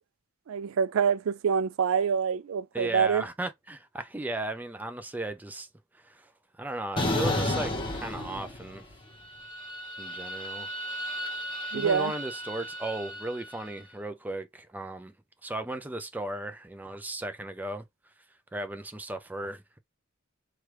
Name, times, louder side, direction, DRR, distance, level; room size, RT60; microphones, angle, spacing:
voice 1, 0.5-3.2 11.7-12.1, right 7 dB, 85° right, 0.4 m, -26 dB
voice 2, 2.7-5.7 5.9-6.3 6.6-8.8 10.0-10.7 11.7-15.1 15.4-17.8 18.5-19.8, right 1 dB, 10° right, 0.3 m, -36 dB
sound 1, 7.0-8.9 9.2-13.6, left 1 dB, 25° left, 0.9 m, -33 dB
3.2 x 2.3 x 2.9 m
head